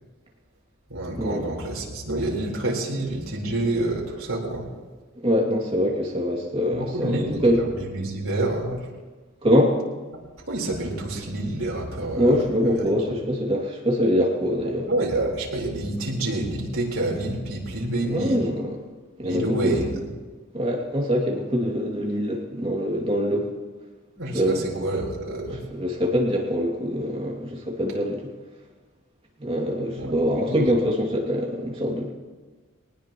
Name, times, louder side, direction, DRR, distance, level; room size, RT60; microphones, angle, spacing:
voice 1, 0.9-4.7 6.7-8.9 10.5-13.2 14.9-18.4 19.2-20.0 24.2-25.6 30.0-30.1 30.5-30.7, right 2 dB, 70° right, -3 dB, 4.2 m, -28 dB
voice 2, 5.2-7.6 9.4-9.7 12.1-14.9 18.0-18.8 19.2-19.8 20.5-23.5 24.3-24.6 25.7-28.2 29.4-32.1, equal, 25° right, -1 dB, 2.5 m, -24 dB
21.0 x 19.0 x 3.1 m, 1.4 s
head